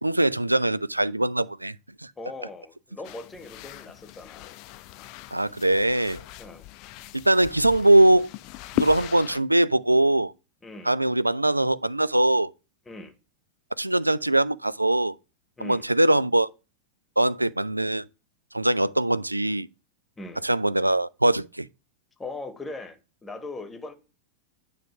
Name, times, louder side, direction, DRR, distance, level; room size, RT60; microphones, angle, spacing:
voice 1, 0.0-1.8 2.0-2.1 5.3-6.2 7.1-8.3 8.7-10.3 10.8-12.5 13.8-15.2 15.6-16.5 17.2-18.0 18.5-19.7 20.4-21.7, right 1 dB, 85° right, 0.3 m, -22 dB
voice 2, 2.2-4.5 6.4-6.7 10.6-10.9 12.9-13.1 15.6-15.8 20.2-20.4 22.2-23.9, left 2 dB, 10° left, 1.3 m, -39 dB
sound 1, 3.0-9.4, left 17 dB, 40° left, 0.5 m, -37 dB
9.1 x 3.3 x 5.7 m
figure-of-eight pair, 90°, 0 cm